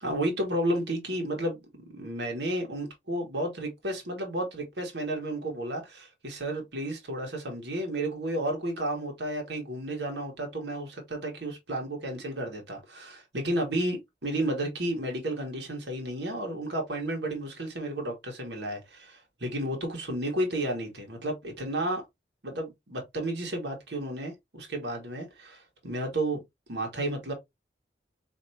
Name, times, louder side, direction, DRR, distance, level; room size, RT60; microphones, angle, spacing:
voice 1, 0.0-22.0 22.4-26.4 26.7-27.3, right 1 dB, 70° right, 1.4 m, -32 dB
4.4 x 2.9 x 2.7 m
head